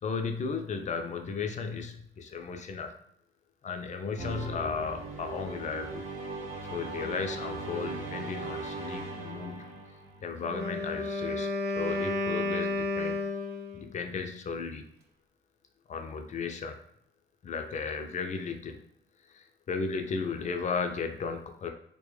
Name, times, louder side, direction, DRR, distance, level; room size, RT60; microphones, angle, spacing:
voice 1, 0.0-2.9 3.6-6.0 6.7-9.8 10.2-11.5 11.8-13.3 13.7-14.9 15.9-16.8 17.4-18.8 19.3-21.7, left 5 dB, 35° left, 5 dB, 0.4 m, -35 dB
sound 1, 4.2-10.6, right 3 dB, 35° right, 0.9 m, -39 dB
Wind instrument woodwind instrument, 10.4-13.9, left 2 dB, 55° right, 0.5 m, -32 dB
2.2 x 2.1 x 3.1 m, 0.71 s
cardioid pair, 90°, 20 cm